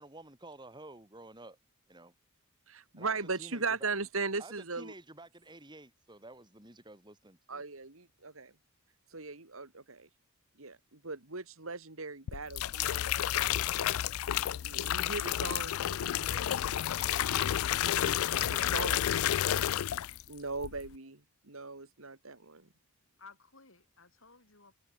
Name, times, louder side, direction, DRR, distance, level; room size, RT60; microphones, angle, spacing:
voice 1, 0.0-1.6 1.9-2.1 3.0-3.9 4.4-7.6, right 2 dB, 20° right, 5.8 m, -51 dB
voice 2, 2.7-4.9 7.5-8.5 9.1-10.1 10.6-13.9 14.6-17.5 17.8-19.1 20.3-22.7, right 4 dB, 75° right, 2.6 m, -39 dB
sound 1, 12.3-20.3 20.6-20.9, left 11 dB, 85° left, 0.4 m, -31 dB
voice 3, 23.2-24.7, left 4 dB, 70° left, 7.3 m, -58 dB
head